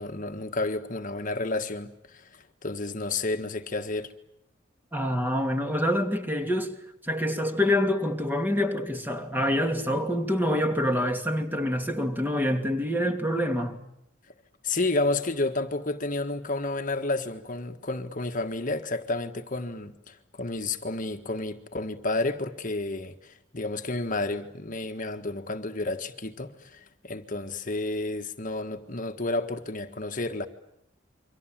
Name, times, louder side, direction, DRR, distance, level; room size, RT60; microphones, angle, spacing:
voice 1, 0.0-4.1 14.6-30.5, left 2 dB, 45° left, 1.6 m, -31 dB
voice 2, 4.9-6.7 7.0-13.8, left 1 dB, 10° right, 2.8 m, -26 dB
29.0 x 24.5 x 7.5 m
head